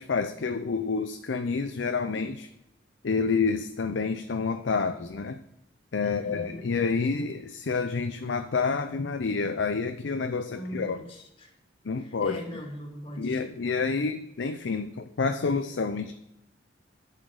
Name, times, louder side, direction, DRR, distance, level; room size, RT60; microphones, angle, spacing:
voice 1, 0.0-2.5 3.0-5.4 5.9-11.0 11.8-12.4 13.2-16.1, left 4 dB, 75° left, 8 dB, 0.5 m, -28 dB
voice 2, 6.0-6.7 10.5-11.5 12.0-13.4, equal, 30° left, 1 dB, 2.2 m, -40 dB
8.7 x 5.8 x 6.4 m, 0.88 s
head